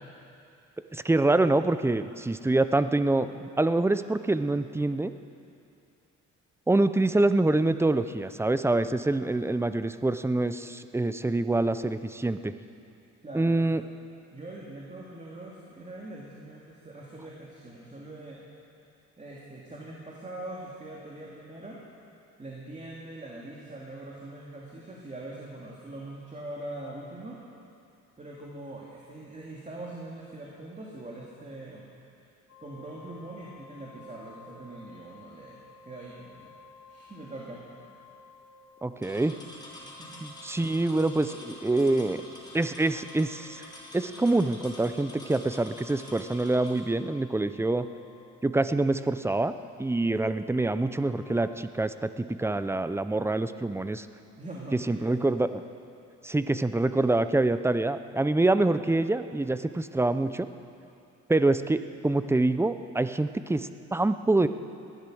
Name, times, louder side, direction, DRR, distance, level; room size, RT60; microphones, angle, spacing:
voice 1, 0.9-5.1 6.7-12.5 13.3-13.8 38.8-39.4 40.2-42.2 42.5-43.6 43.9-47.9 48.4-49.5 49.8-54.1 54.9-55.6 56.2-60.5 61.3-64.5, right 2 dB, 10° right, 11 dB, 0.6 m, -26 dB
voice 2, 13.2-13.6 14.3-18.4 19.2-21.8 22.4-27.4 28.2-31.9 32.6-36.5 36.9-37.8 39.8-40.2 54.4-55.4, right 2 dB, 25° right, -4 dB, 2.4 m, -42 dB
sound 1, 32.5-51.6, left 4 dB, 55° left, 3.6 m, -55 dB
sound 2, 39.0-46.8, left 1 dB, 15° left, 3.8 m, -47 dB
19.0 x 12.0 x 6.3 m, 2.6 s
cardioid pair, 90°, 30 cm